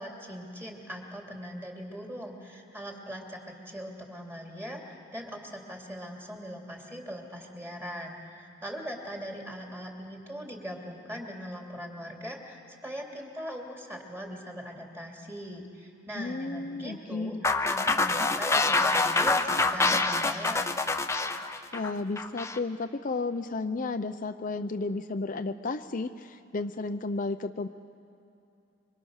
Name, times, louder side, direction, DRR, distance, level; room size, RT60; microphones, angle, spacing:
voice 1, 0.0-17.4 17.6-20.8, equal, 15° right, 0 dB, 3.0 m, -40 dB
voice 2, 16.2-17.4 21.7-27.7, left 3 dB, 45° left, 8 dB, 0.6 m, -33 dB
sound 1, 17.4-22.6, left 3 dB, 15° left, 0.8 m, -26 dB
26.0 x 24.5 x 6.5 m, 2.8 s
head